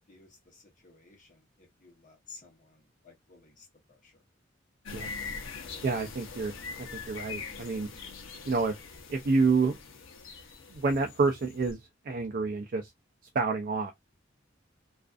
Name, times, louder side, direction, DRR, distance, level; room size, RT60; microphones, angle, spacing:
voice 1, 0.0-4.2, left 4 dB, 40° left, 0.9 m, -55 dB
sound 1, 4.9-11.7, left 5 dB, 80° left, 0.7 m, -43 dB
voice 2, 5.8-6.5 6.8-7.9 8.5-8.7 9.1-9.8 10.7-11.8 12.1-12.9 13.3-14.0, right 4 dB, 45° right, 0.4 m, -28 dB
2.4 x 2.3 x 2.4 m
head